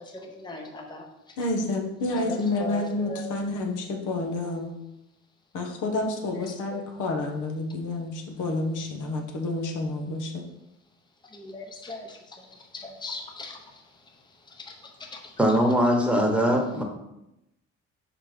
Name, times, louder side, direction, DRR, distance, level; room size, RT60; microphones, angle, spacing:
voice 1, 0.4-1.1 2.1-3.2 6.3-6.5 6.7-6.8 11.4-12.1 12.7-13.6, left 2 dB, 15° left, 2 dB, 0.8 m, -38 dB
voice 2, 1.4-4.8 5.5-10.5, left 2 dB, 80° left, 2 dB, 1.1 m, -29 dB
voice 3, 15.4-16.8, equal, 5° right, 0 dB, 1.2 m, -21 dB
4.7 x 4.0 x 5.0 m, 0.89 s
cardioid pair, 90°, 30 cm